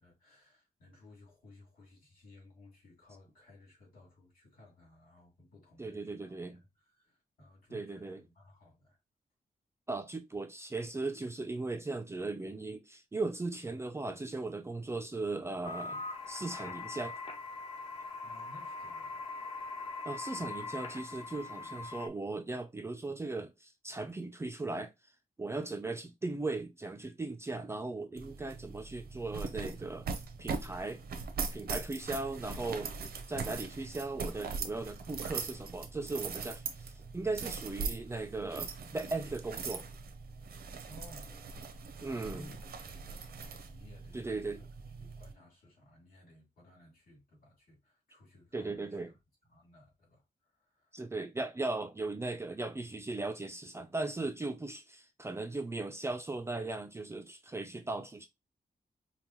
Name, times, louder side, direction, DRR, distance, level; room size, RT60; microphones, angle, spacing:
voice 1, 0.0-9.0 18.2-19.3 40.9-44.7 45.0-49.1 49.5-51.0, left 1 dB, 70° left, 2.5 m, -58 dB
voice 2, 5.8-6.6 7.7-8.2 9.9-17.1 20.0-24.9 25.4-30.1 30.4-31.0 31.5-32.9 33.3-39.9 42.0-42.5 44.1-44.6 48.5-49.1 50.9-58.3, right 3 dB, 15° right, 0.4 m, -38 dB
sound 1, 15.6-22.1, left 3 dB, 35° left, 0.7 m, -42 dB
sound 2, 28.2-45.3, right 5 dB, 90° right, 0.7 m, -41 dB
5.3 x 2.2 x 3.0 m
wide cardioid pair, 180°, 15 cm